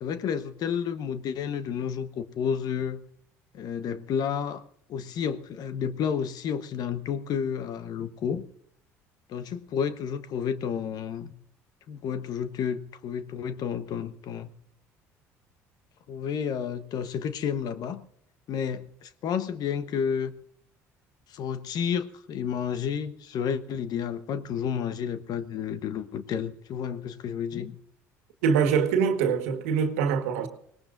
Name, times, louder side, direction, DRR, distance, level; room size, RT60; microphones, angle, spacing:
voice 1, 0.0-3.0 3.5-4.6 4.9-8.4 9.3-11.3 11.9-14.5 16.1-18.0 18.5-20.3 21.3-27.7, left 7 dB, 60° left, 1.1 m, -31 dB
voice 2, 28.4-30.5, right 6 dB, 80° right, 1.7 m, -24 dB
25.5 x 18.5 x 2.6 m
hypercardioid pair, 65°, 8 cm